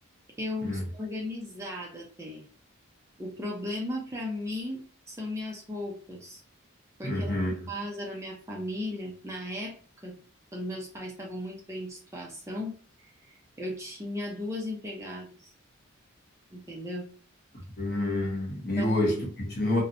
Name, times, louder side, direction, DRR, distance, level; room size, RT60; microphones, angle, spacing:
voice 1, 0.4-2.4 3.2-4.8 5.1-6.4 7.0-7.3 7.7-10.1 10.5-15.5 16.5-17.1 18.8-19.0, left 1 dB, 15° right, 0.4 m, -36 dB
voice 2, 7.0-7.7 17.8-19.8, left 1 dB, 45° left, 0.8 m, -28 dB
2.7 x 2.1 x 2.5 m
head